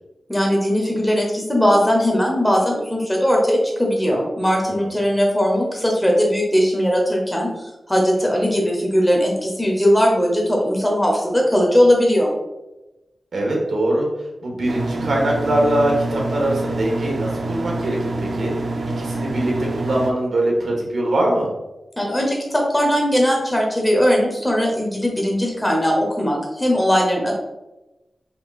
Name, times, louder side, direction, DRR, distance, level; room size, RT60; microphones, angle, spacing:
voice 1, 0.3-7.5 7.9-12.3 22.0-27.3, equal, 5° left, -1 dB, 0.8 m, -19 dB
voice 2, 13.3-14.1 14.4-18.5 19.0-21.5, right 1 dB, 75° right, -1 dB, 1.3 m, -22 dB
sound 1, 14.7-20.1, right 2 dB, 50° right, 0.4 m, -26 dB
5.2 x 3.8 x 2.3 m, 0.99 s
wide cardioid pair, 125°, 0 cm